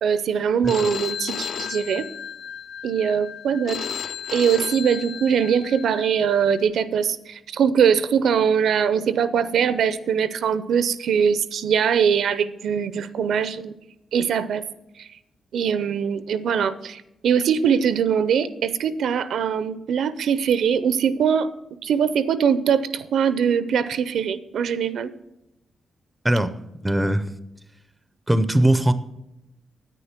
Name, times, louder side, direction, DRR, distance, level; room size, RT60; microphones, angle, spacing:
voice 1, 0.0-2.1 2.8-3.8 4.3-13.7 14.1-14.6 15.0-15.1 15.5-21.5 21.8-25.1, right 7 dB, 70° right, 14 dB, 0.6 m, -22 dB
Telephone, 0.7-6.6, left 8 dB, 45° left, 0.4 m, -34 dB
voice 2, 26.8-27.3 28.3-28.9, right 1 dB, 5° right, 12 dB, 0.5 m, -19 dB
9.9 x 9.3 x 5.8 m, 0.88 s
wide cardioid pair, 170°, 0 cm